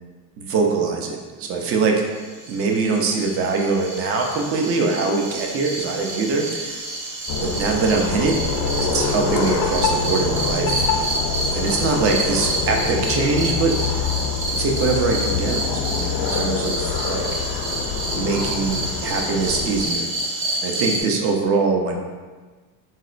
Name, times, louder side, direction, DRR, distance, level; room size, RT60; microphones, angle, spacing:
voice 1, 0.4-2.0 2.5-6.9 7.4-8.3 8.9-10.9 11.5-14.1 14.6-17.4 18.1-20.1 20.6-22.0, right 4 dB, 30° right, 2 dB, 0.4 m, -23 dB
sound 1, 2.1-21.0, right 2 dB, 50° right, 0.9 m, -29 dB
sound 2, 7.3-19.9, left 5 dB, 50° left, 0.5 m, -25 dB
4.1 x 2.0 x 2.4 m, 1.4 s
supercardioid pair, 100°, 49 cm